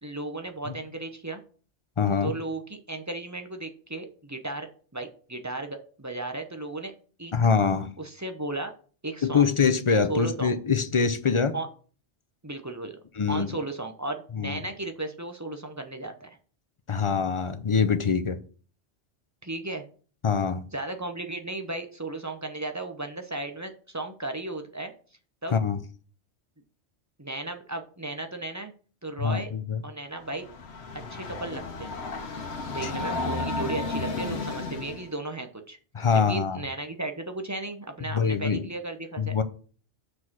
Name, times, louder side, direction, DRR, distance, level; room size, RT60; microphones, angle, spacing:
voice 1, 0.0-1.4 2.2-6.9 7.2-7.3 8.0-8.7 9.0-9.5 10.1-10.5 11.5-11.7 12.4-13.0 13.3-16.4 19.4-19.8 20.7-24.9 25.4-25.5 27.2-28.7 29.0-29.5 29.8-30.5 31.1-31.9 32.7-35.8 36.1-39.4, right 2 dB, 20° right, 0.7 m, -35 dB
voice 2, 2.0-2.4 7.3-7.9 9.2-11.5 13.2-13.5 14.4-14.5 16.9-18.4 20.2-20.6 25.5-25.8 29.2-29.8 32.8-32.9 35.9-36.6 38.1-38.7 39.2-39.4, left 5 dB, 40° left, 0.4 m, -24 dB
Train, 30.2-35.1, left 3 dB, 65° left, 1.1 m, -33 dB
6.2 x 4.8 x 6.0 m
omnidirectional pair, 1.2 m